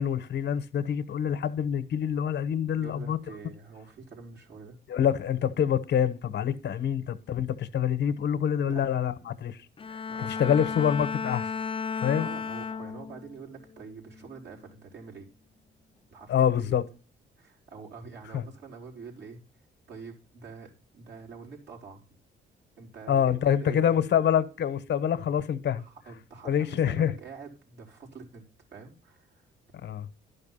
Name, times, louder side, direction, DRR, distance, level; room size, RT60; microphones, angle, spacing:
voice 1, 0.0-3.2 4.9-10.0 10.3-11.5 12.0-12.3 16.3-16.8 18.3-18.4 23.1-25.8 26.4-27.1 29.8-30.1, left 9 dB, 60° left, 1.0 m, -26 dB
voice 2, 2.8-4.8 8.7-9.1 10.1-10.7 12.2-15.3 16.1-16.8 17.4-19.4 19.9-22.2 22.8-24.0 25.8-28.5 28.7-29.5, right 5 dB, 60° right, 4.2 m, -46 dB
Bowed string instrument, 9.8-13.3 13.8-14.2, left 5 dB, 25° left, 0.5 m, -34 dB
12.0 x 5.5 x 5.7 m
cardioid pair, 90°, 20 cm